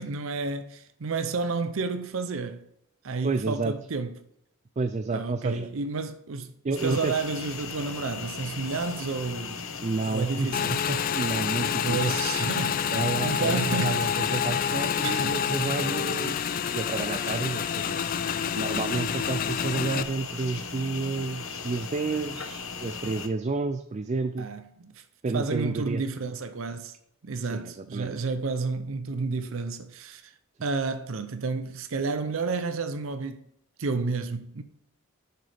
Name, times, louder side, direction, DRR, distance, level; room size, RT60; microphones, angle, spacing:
voice 1, 0.0-2.7 3.0-4.2 5.1-9.6 10.1-10.8 11.8-12.9 13.2-14.2 15.0-15.4 24.4-25.0 25.3-26.9 27.2-30.3 30.6-33.4 33.8-34.6, right 4 dB, 75° right, 0.6 m, -31 dB
voice 2, 3.2-3.7 4.8-5.7 6.6-7.1 9.8-10.5 10.9-12.0 12.9-16.5 16.7-18.0 18.5-24.5 25.2-26.0 27.4-28.1, right 3 dB, 35° right, 0.4 m, -30 dB
sound 1, 6.7-23.3, left 5 dB, 85° left, 0.9 m, -38 dB
Motorcycle / Engine, 10.5-20.0, left 8 dB, 45° left, 0.3 m, -28 dB
10.0 x 6.8 x 3.4 m
head